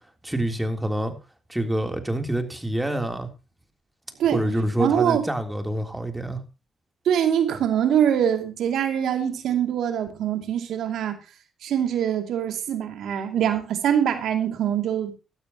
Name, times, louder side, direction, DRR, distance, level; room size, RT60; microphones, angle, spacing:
voice 1, 0.2-1.1 1.5-3.3 4.3-6.4, right 1 dB, 10° right, 3.4 m, -26 dB
voice 2, 4.8-5.2 7.0-11.2 11.6-15.2, right 9 dB, 75° right, 2.7 m, -23 dB
16.5 x 12.5 x 3.0 m
supercardioid pair, 65°, 0 cm